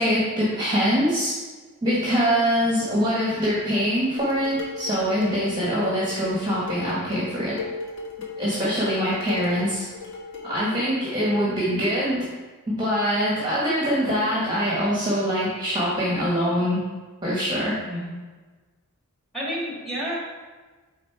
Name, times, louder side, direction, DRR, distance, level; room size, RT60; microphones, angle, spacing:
voice 1, 0.0-1.4 1.8-7.6 8.4-9.8 10.4-12.3 12.7-16.8 17.2-17.8, equal, 20° right, -7 dB, 1.4 m, -23 dB
Dishes pots and pans, 4.2-10.8, left 4 dB, 60° left, 1.3 m, -36 dB
voice 2, 19.3-20.2, equal, ahead, -5 dB, 2.2 m, -30 dB
8.5 x 3.8 x 4.6 m, 1.3 s
head